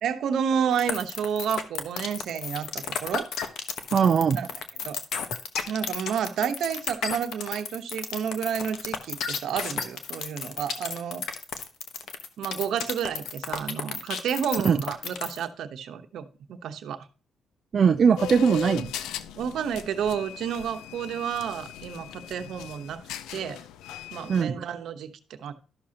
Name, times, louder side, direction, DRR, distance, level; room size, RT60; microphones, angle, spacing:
voice 1, 0.0-3.3 4.4-4.5 4.8-5.0 5.7-11.2 12.4-17.0 19.4-23.0 23.3-23.6 24.1-25.5, right 8 dB, 75° right, 8 dB, 1.0 m, -30 dB
sound 1, 0.8-15.4, left 7 dB, 75° left, 1.1 m, -32 dB
voice 2, 3.9-4.4 14.6-14.8 17.7-18.9 24.3-24.5, right 6 dB, 50° right, 8 dB, 0.4 m, -20 dB
sound 2, 18.2-24.4, left 10 dB, 90° left, 0.5 m, -38 dB
12.5 x 6.4 x 2.8 m, 0.37 s
cardioid pair, 90°, 0 cm